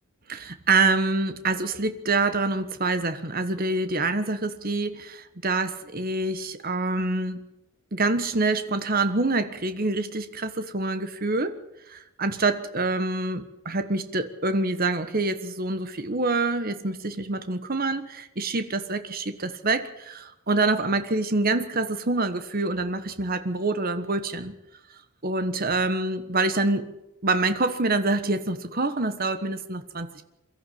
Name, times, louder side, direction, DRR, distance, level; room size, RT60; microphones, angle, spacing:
voice 1, 0.3-7.5 7.9-11.6 11.9-24.5 25.2-26.9 27.2-30.2, right 3 dB, 40° right, 10 dB, 1.3 m, -26 dB
23.0 x 13.5 x 8.5 m, 0.90 s
head